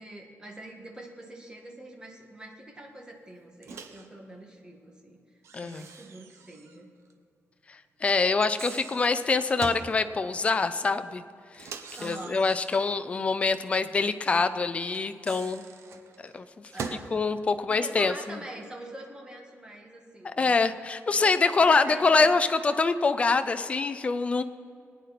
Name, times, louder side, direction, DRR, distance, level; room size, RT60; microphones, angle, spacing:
voice 1, 0.0-6.9 9.5-9.8 12.0-12.4 16.7-17.2 17.7-20.5 21.2-22.7, right 1 dB, 15° right, 1 dB, 1.7 m, -44 dB
Microwave oven, 3.6-4.1 5.4-6.8 7.1-7.2 8.3-9.9 11.5-13.0 14.9-17.1, right 5 dB, 75° right, 0.9 m, -42 dB
voice 2, 5.5-5.9 8.0-11.2 11.5-11.7 12.0-15.7 16.2-16.5 17.1-18.4 20.4-24.4, left 4 dB, 25° left, 10 dB, 0.5 m, -25 dB
21.5 x 9.4 x 4.2 m, 2.3 s
wide cardioid pair, 160°, 5 cm